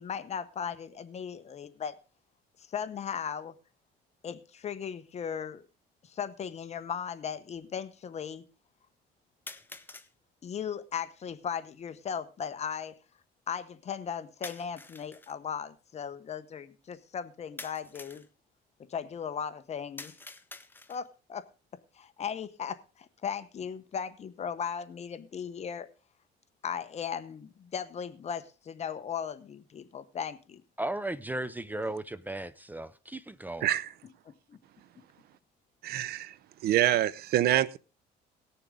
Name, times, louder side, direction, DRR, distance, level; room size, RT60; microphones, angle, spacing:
voice 1, 0.0-2.0 2.6-3.5 4.2-5.6 6.0-8.4 10.4-13.0 13.5-18.2 18.9-20.1 20.9-21.5 22.0-25.9 26.6-30.6 34.3-34.6, left 7 dB, 40° left, 0.9 m, -37 dB
sound 1, 5.1-5.2 6.2-6.3 9.5-10.1 14.4-15.4 17.6-18.3 20.0-21.1, left 3 dB, 10° left, 0.8 m, -46 dB
voice 2, 30.8-33.7, right 1 dB, 10° right, 0.5 m, -36 dB
voice 3, 35.8-36.3 36.6-37.8, right 13 dB, 65° right, 0.6 m, -26 dB
18.5 x 6.8 x 3.7 m
cardioid pair, 110°, 17 cm